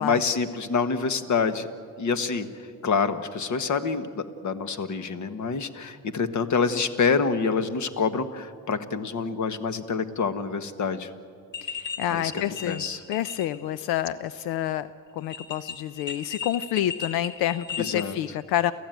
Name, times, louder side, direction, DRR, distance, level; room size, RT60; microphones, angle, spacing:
voice 1, 0.0-1.7 2.0-2.5 2.8-11.1 12.1-12.3 12.6-13.0 17.8-18.2, left 5 dB, 50° left, 10 dB, 1.6 m, -26 dB
sound 1, 11.5-12.0 12.3-13.6 13.9-14.0 15.2-18.0, left 6 dB, 30° left, 3.0 m, -35 dB
voice 2, 11.6-12.8 13.1-14.9 15.2-18.7, left 12 dB, 90° left, 15 dB, 0.7 m, -28 dB
29.0 x 15.0 x 9.2 m, 2.3 s
cardioid pair, 110°, 37 cm